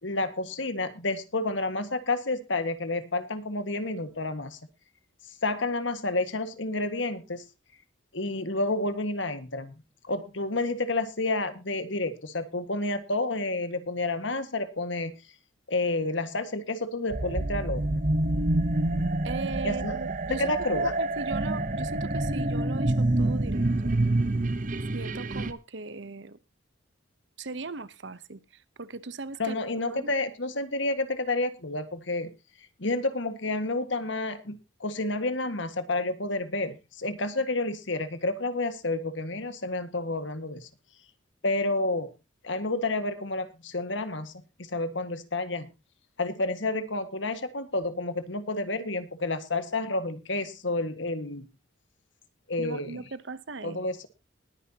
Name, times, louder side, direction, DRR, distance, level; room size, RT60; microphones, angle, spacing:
voice 1, 0.0-4.6 5.4-7.4 8.1-9.7 10.1-15.1 15.7-18.1 19.6-19.9 20.4-20.9 29.4-32.3 32.8-40.7 41.4-42.1 42.4-44.3 44.6-45.7 46.2-51.5 52.5-53.0 53.6-54.1, left 2 dB, 70° left, 10 dB, 1.8 m, -30 dB
sound 1, 17.1-25.5, right 2 dB, 40° right, 0.9 m, -27 dB
voice 2, 19.2-23.9 24.9-26.4 27.4-30.1 52.6-53.8, right 3 dB, 65° right, 16 dB, 0.9 m, -39 dB
20.5 x 9.8 x 2.9 m, 0.28 s
head